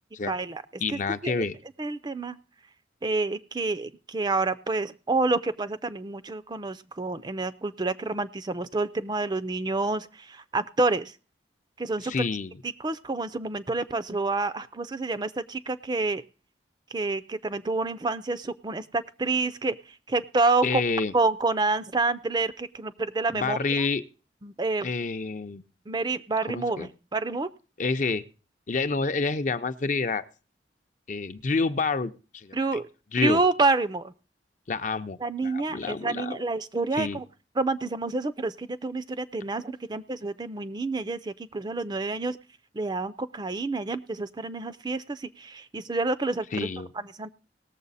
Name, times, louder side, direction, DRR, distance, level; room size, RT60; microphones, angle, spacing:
voice 1, 0.3-0.6 0.9-1.5 1.8-2.4 3.0-11.1 11.8-12.1 12.6-16.2 16.9-20.8 21.1-23.8 24.4-24.9 25.9-27.5 32.5-32.9 33.2-34.1 35.2-37.2 37.6-42.4 42.7-46.7 46.9-47.3, right 3 dB, 25° right, 14 dB, 0.5 m, -28 dB
voice 2, 0.8-1.6 12.0-12.6 20.6-21.1 23.3-24.0 24.8-25.6 26.5-26.9 27.8-28.3 28.7-30.3 31.1-32.6 33.1-33.4 34.7-36.4 36.9-37.2 46.5-46.9, left 4 dB, 45° left, 10 dB, 0.6 m, -28 dB
19.0 x 7.2 x 4.1 m, 0.36 s
head